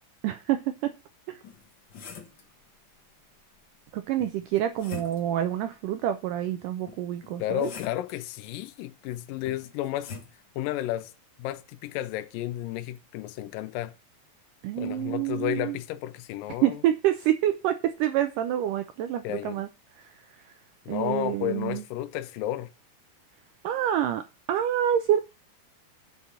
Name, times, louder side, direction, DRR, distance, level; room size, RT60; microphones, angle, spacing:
voice 1, 0.2-0.6 1.3-1.4 3.9-7.7 14.6-15.7 16.6-19.7 20.9-21.8 23.6-24.2 24.5-25.2, right 11 dB, 80° right, 1.9 m, -27 dB
sound 1, 1.4-2.5 4.2-5.4 6.9-8.1 9.4-10.4, left 5 dB, 55° left, 1.3 m, -43 dB
voice 2, 7.4-10.1 10.6-11.1 11.4-13.9 14.8-16.8 19.2-19.6 20.9-22.7, left 13 dB, 75° left, 2.2 m, -32 dB
8.1 x 5.8 x 7.3 m
omnidirectional pair, 4.4 m